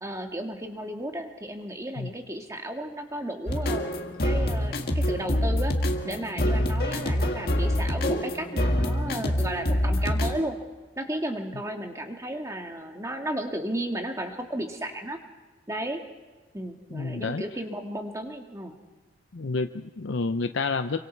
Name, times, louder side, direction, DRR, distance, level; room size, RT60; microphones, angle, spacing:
voice 1, 0.0-3.9 4.2-5.7 6.0-10.6 11.0-15.2 15.7-16.0 16.5-18.8, right 1 dB, 15° right, 3 dB, 2.0 m, -34 dB
sound 1, 3.5-10.4, left 1 dB, 55° left, 1.9 m, -26 dB
voice 2, 16.9-17.4 19.3-21.0, left 3 dB, 70° left, 8 dB, 0.7 m, -29 dB
28.0 x 24.0 x 4.6 m, 1.3 s
head